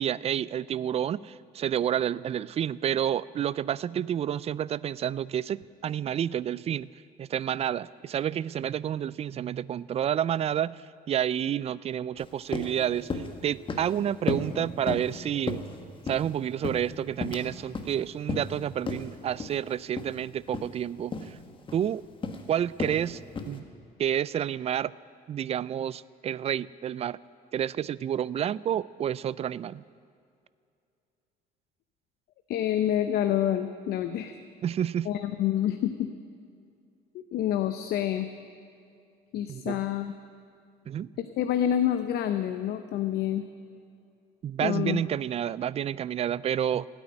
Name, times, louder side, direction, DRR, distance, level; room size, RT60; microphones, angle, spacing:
voice 1, 0.0-6.9 7.2-10.8 11.1-15.6 16.1-21.4 21.7-22.0 22.5-23.2 23.5-23.6 24.0-24.9 25.3-27.2 27.5-29.8 34.6-35.1 39.5-39.8 40.9-41.1 44.4-46.9, right 10 dB, 40° right, 20 dB, 0.4 m, -29 dB
sound 1, 12.2-12.3 12.5-12.8 13.1-13.4 13.7-14.0 14.3-14.5 14.9-15.2 15.5-16.3 16.6-17.5 17.7-17.9 18.3-18.6 18.9-19.0 19.4-19.6 20.0-20.2 20.5-20.7 21.1-21.3 21.7-21.9 22.2-22.4 22.8-23.0 23.4-23.6, left 4 dB, 30° left, 1.4 m, -33 dB
voice 2, 32.5-34.4 35.1-36.1 37.3-38.3 39.3-40.1 41.2-43.5 44.6-45.0, left 11 dB, 70° left, 8 dB, 0.8 m, -27 dB
16.5 x 9.1 x 9.7 m, 2.4 s
cardioid pair, 110°, 17 cm